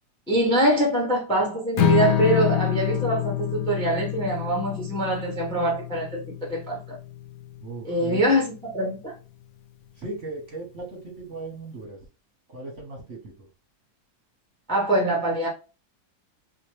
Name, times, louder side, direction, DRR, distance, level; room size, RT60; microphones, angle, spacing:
voice 1, 0.3-6.8 7.8-9.1 14.7-15.5, right 1 dB, 5° left, 0.8 m, -24 dB
Strum, 1.8-8.0, left 12 dB, 85° left, 0.7 m, -27 dB
voice 2, 7.6-8.2 10.0-12.0 12.5-13.5, right 3 dB, 45° right, 1.2 m, -37 dB
3.1 x 2.9 x 3.1 m
omnidirectional pair, 2.0 m